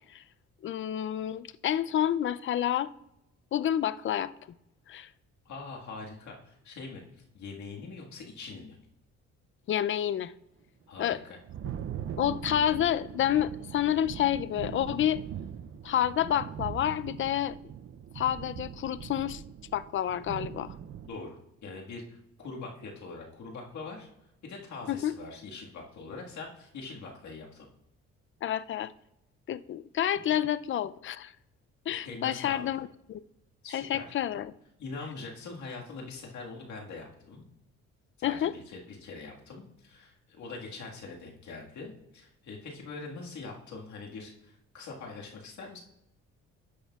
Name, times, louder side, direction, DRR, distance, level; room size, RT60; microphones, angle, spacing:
voice 1, 0.6-2.9 3.5-4.3 4.9-5.1 9.7-10.3 11.0-11.2 12.2-15.2 15.8-17.6 18.1-19.4 19.7-20.8 24.9-25.1 28.4-28.9 29.5-31.3 31.9-33.2 33.7-34.5 38.2-38.5, left 11 dB, 40° left, 0.4 m, -29 dB
voice 2, 5.5-7.0 7.3-8.8 10.9-11.4 21.0-24.1 24.4-27.7 32.0-32.7 33.6-34.1 34.8-37.4 38.2-45.8, left 3 dB, 70° left, 1.7 m, -43 dB
Thunder, 11.0-21.1, right 9 dB, 45° right, 0.5 m, -41 dB
12.0 x 8.5 x 2.4 m
cardioid pair, 90°, 30 cm